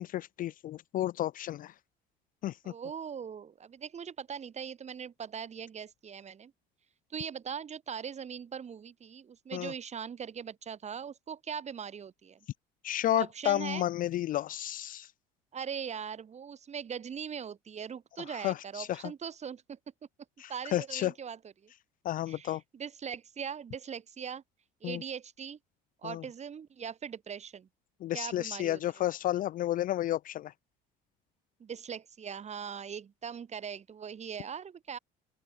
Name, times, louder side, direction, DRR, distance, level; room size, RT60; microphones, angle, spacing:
voice 1, 0.0-1.7 2.4-2.7 9.5-9.7 12.8-15.1 18.4-19.0 20.4-21.1 22.0-22.6 24.8-25.0 26.0-26.2 28.0-30.5, left 13 dB, 45° left, 0.4 m, -32 dB
voice 2, 2.6-6.5 7.1-12.4 13.2-13.9 15.5-19.8 20.5-21.7 22.3-24.4 24.8-25.6 26.0-27.7 28.1-29.0 31.6-35.0, right 7 dB, 35° right, 2.8 m, -40 dB
open air
cardioid pair, 105°, 20 cm